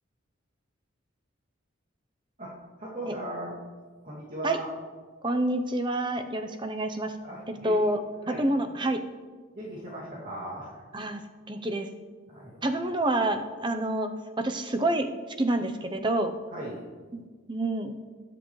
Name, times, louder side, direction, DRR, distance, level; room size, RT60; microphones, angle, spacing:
voice 1, 2.8-3.6 4.0-4.7 7.2-7.9 8.2-8.4 9.5-11.1 12.3-12.7 16.5-16.8, right 1 dB, 40° right, -7 dB, 2.4 m, -38 dB
voice 2, 5.2-7.1 7.6-8.0 8.3-9.0 10.9-11.2 11.5-11.9 12.6-14.1 14.4-15.1 15.4-16.3 17.1-17.2 17.5-17.9, right 1 dB, 20° right, 7 dB, 0.7 m, -27 dB
20.5 x 7.8 x 3.2 m, 1.5 s
head